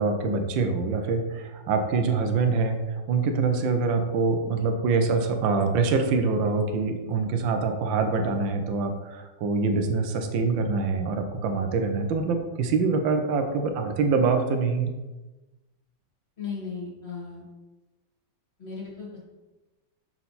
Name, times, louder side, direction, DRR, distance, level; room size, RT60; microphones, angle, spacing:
voice 1, 0.0-2.8 3.1-14.9, right 4 dB, 80° right, 5 dB, 1.5 m, -25 dB
voice 2, 16.4-17.4 18.6-19.2, left 5 dB, 35° left, -6 dB, 2.0 m, -36 dB
6.0 x 4.5 x 4.1 m, 1.1 s
omnidirectional pair, 2.1 m